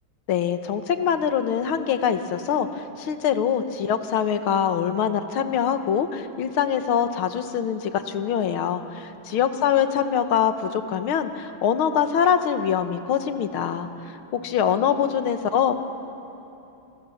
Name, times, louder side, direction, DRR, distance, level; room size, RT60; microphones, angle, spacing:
voice 1, 0.3-13.9 14.3-15.7, left 8 dB, 75° left, 8 dB, 2.1 m, -24 dB
27.0 x 27.0 x 7.2 m, 2.9 s
omnidirectional pair, 2.3 m